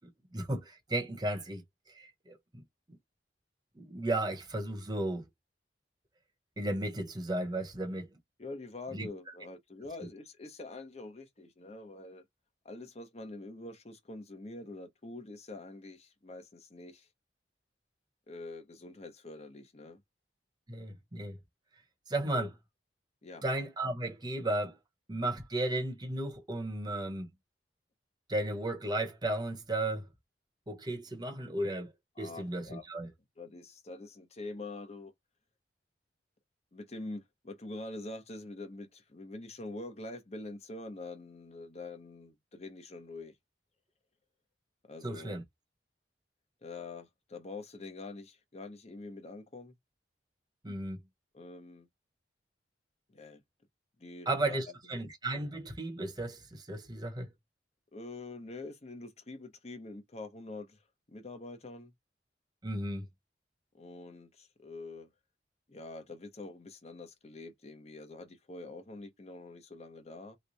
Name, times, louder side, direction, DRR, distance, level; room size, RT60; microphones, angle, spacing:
voice 1, 0.3-1.6 1.9-2.4 3.8-5.2 6.6-8.1 8.9-9.1 20.7-21.4 22.1-22.5 23.4-24.8 25.1-27.3 28.3-30.0 30.7-31.9 32.2-33.1 45.0-45.4 50.6-51.0 54.3-57.3 62.6-63.1, right 1 dB, 25° right, 0.9 m, -34 dB
voice 2, 8.4-12.2 12.6-17.1 18.3-20.0 22.2-22.5 23.2-23.4 32.2-32.8 33.4-35.1 36.7-43.4 44.9-45.4 46.6-49.7 51.3-51.9 53.1-53.4 54.0-54.6 57.9-60.8 61.1-61.9 63.8-65.1 65.7-70.4, left 2 dB, 40° left, 0.8 m, -45 dB
3.1 x 2.2 x 3.9 m
head